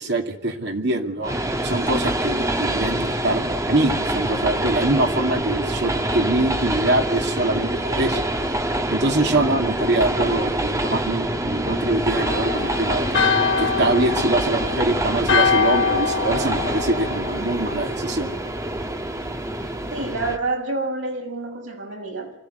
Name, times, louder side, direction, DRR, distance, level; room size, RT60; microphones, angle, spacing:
voice 1, 0.0-1.3 1.6-8.2 8.9-13.2 13.6-18.3, right 2 dB, 65° right, 3 dB, 2.6 m, -24 dB
Train, 1.2-20.4, right 1 dB, 15° right, 1.4 m, -25 dB
Church bell, 12.2-17.9, left 5 dB, 70° left, 1.2 m, -24 dB
voice 2, 19.9-22.3, right 2 dB, 80° right, 1 dB, 6.4 m, -28 dB
25.0 x 15.5 x 8.1 m, 0.91 s
head